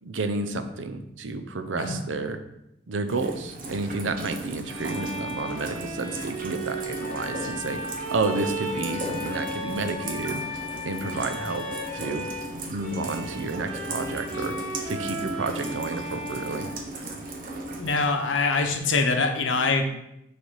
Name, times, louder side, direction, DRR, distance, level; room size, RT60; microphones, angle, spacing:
voice 1, 0.0-2.4 2.9-7.8 8.1-10.4 10.8-11.7 11.9-12.3 12.7-14.5 14.9-16.7, right 3 dB, 90° right, 8 dB, 0.6 m, -30 dB
Rain, 3.1-18.1, right 2 dB, 50° right, 0.9 m, -37 dB
Bowed string instrument, 4.6-12.5 12.8-17.6, right 2 dB, 30° right, 1.5 m, -36 dB
Wind instrument woodwind instrument, 7.0-12.5, left 5 dB, 35° left, 0.9 m, -39 dB
voice 2, 17.8-19.8, left 4 dB, 80° left, 5 dB, 0.8 m, -24 dB
6.4 x 3.4 x 4.6 m, 0.84 s
head